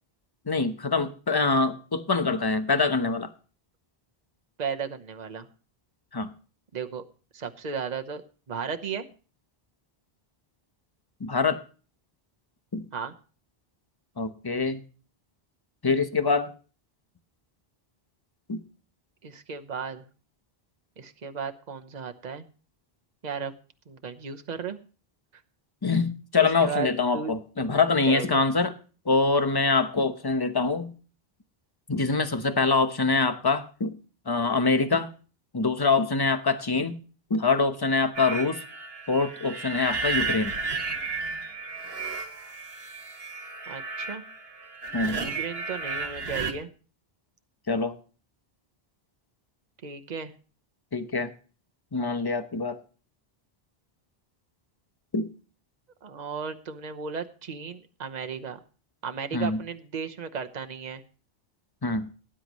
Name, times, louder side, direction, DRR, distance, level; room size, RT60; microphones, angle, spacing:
voice 1, 0.5-3.3 6.1-6.3 11.2-11.6 12.7-12.9 14.2-14.8 15.8-16.5 18.5-18.6 25.8-28.7 29.0-30.9 31.9-34.0 34.3-35.1 35.5-37.0 37.3-38.6 39.1-40.5 44.9-45.2 47.7-48.0 50.9-51.3 51.9-52.8 55.1-55.3 59.3-59.6 61.8-62.1, left 4 dB, 25° left, 9 dB, 0.9 m, -24 dB
voice 2, 4.6-5.5 6.7-7.0 7.3-8.2 8.5-9.0 12.9-13.1 19.2-20.0 21.0-22.5 23.2-23.5 23.9-24.8 26.4-26.9 27.1-27.3 28.1-28.4 43.7-44.2 45.1-46.7 49.8-50.3 56.0-58.6 59.0-61.0, right 6 dB, 45° right, 6 dB, 1.0 m, -35 dB
sound 1, 38.1-46.5, right 4 dB, 70° right, 1.7 m, -33 dB
18.0 x 10.0 x 3.1 m, 0.38 s
omnidirectional pair, 1.0 m